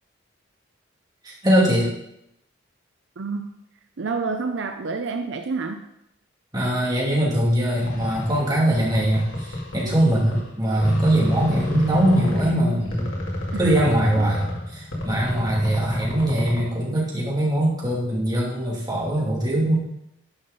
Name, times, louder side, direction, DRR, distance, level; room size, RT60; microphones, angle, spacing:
voice 1, 1.2-1.8 6.5-13.0 13.6-19.8, right 1 dB, 20° right, -5 dB, 2.9 m, -22 dB
voice 2, 3.2-3.6 4.0-5.9 13.5-13.7 14.2-14.3, right 4 dB, 65° right, 7 dB, 0.5 m, -28 dB
sound 1, 7.7-10.5 10.8-16.8, left 1 dB, 75° left, 2.5 m, -29 dB
10.5 x 5.6 x 5.3 m, 0.80 s
head